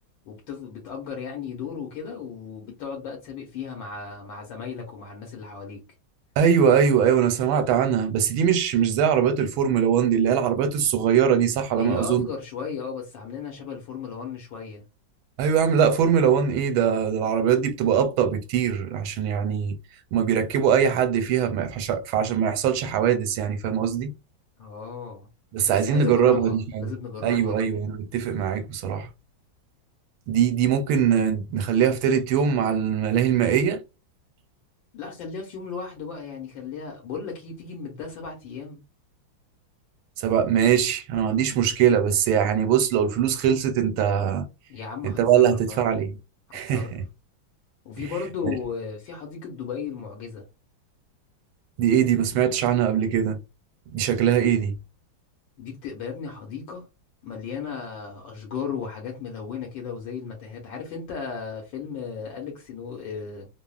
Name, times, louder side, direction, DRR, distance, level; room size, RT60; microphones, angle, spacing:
voice 1, 0.2-5.8 11.7-14.8 24.6-25.3 25.7-27.7 34.9-38.8 44.7-45.9 46.5-47.0 47.8-50.4 55.6-56.9 57.2-63.5, left 6 dB, 75° left, 1.5 m, -35 dB
voice 2, 6.4-12.3 15.4-19.8 20.1-24.1 25.5-26.9 27.2-29.1 30.3-33.8 40.2-44.5 45.0-46.1 46.5-47.0 48.4-48.5 51.8-53.4 53.9-54.7, right 8 dB, 85° right, 1.4 m, -22 dB
3.5 x 2.0 x 2.3 m
omnidirectional pair, 2.2 m